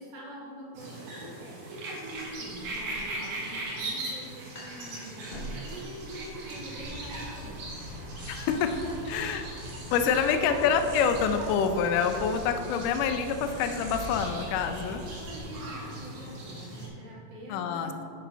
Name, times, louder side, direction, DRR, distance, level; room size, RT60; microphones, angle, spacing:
voice 1, 0.0-7.8 8.2-8.4 8.7-9.1 9.9-10.4 14.8-18.0, right 1 dB, 85° right, -5 dB, 3.7 m, -45 dB
sound 1, 0.8-16.9, right 2 dB, 60° right, 2.7 m, -40 dB
sound 2, 2.2-9.8, right 1 dB, 25° left, 1.3 m, -47 dB
sound 3, 6.8-15.4, left 1 dB, 45° right, 0.4 m, -43 dB
voice 2, 8.3-8.7 9.1-9.5 9.9-15.0 17.5-17.9, left 6 dB, 85° left, 7 dB, 1.8 m, -26 dB
9.2 x 4.9 x 5.7 m, 2.6 s
omnidirectional pair, 4.2 m